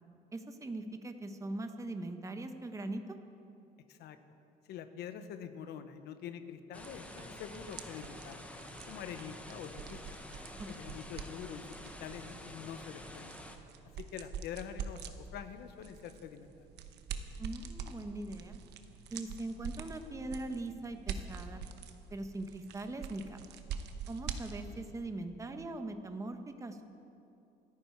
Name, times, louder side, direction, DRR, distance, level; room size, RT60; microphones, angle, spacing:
voice 1, 0.3-3.0 10.6-10.9 17.4-18.6 19.1-21.6 22.1-23.4 24.1-26.8, right 2 dB, 20° right, 7 dB, 1.2 m, -41 dB
voice 2, 4.7-8.5 8.9-10.2 10.7-13.4 14.0-16.7, left 8 dB, 75° left, 9 dB, 1.1 m, -45 dB
sound 1, 6.7-13.6, left 1 dB, 10° left, 1.3 m, -49 dB
sound 2, 6.8-24.9, right 6 dB, 80° right, 1.1 m, -46 dB
27.0 x 9.8 x 4.6 m, 2.7 s
cardioid pair, 110°, 17 cm